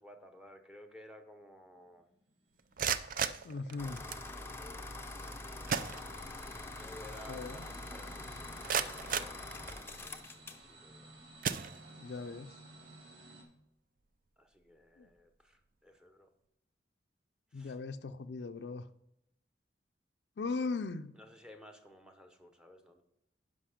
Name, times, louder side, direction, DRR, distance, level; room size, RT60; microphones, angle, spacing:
voice 1, 0.0-2.1 3.8-4.0 4.3-4.9 6.7-11.1 14.4-16.3 17.5-17.7 21.2-23.0, left 1 dB, 5° right, 6 dB, 0.9 m, -55 dB
sound 1, 1.8-13.4, right 1 dB, 80° right, 2.5 m, -56 dB
sound 2, 2.6-4.3 5.3-5.4 5.7-6.6 6.9-7.0 7.6-7.7 8.2-10.1 10.7-11.0 11.4-12.2, right 7 dB, 50° right, 0.5 m, -36 dB
voice 2, 3.4-4.0 7.3-7.7 11.9-12.6 15.0-15.1 17.5-18.9 20.4-21.2, left 4 dB, 65° left, 10 dB, 0.5 m, -39 dB
sound 3, 3.8-10.7, left 2 dB, 15° left, 0.6 m, -45 dB
11.5 x 5.4 x 5.0 m, 0.80 s
head